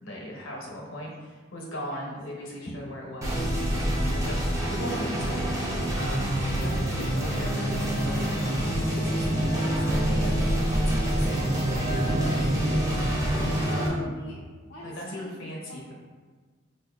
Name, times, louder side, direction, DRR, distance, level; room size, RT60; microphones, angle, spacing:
voice 1, 0.0-5.4 5.9-13.1 13.7-14.1 14.8-15.8, equal, 75° left, -2 dB, 0.8 m, -39 dB
sound 1, 3.2-13.9, equal, 15° right, 0.4 m, -27 dB
sound 2, 5.8-13.0, right 1 dB, 40° right, 0.8 m, -45 dB
voice 2, 6.6-7.2 13.3-14.8 15.1-15.9, left 3 dB, 50° left, -5 dB, 0.4 m, -42 dB
sound 3, 7.2-14.0, right 1 dB, 70° right, 0.9 m, -30 dB
4.4 x 2.6 x 2.3 m, 1.4 s
head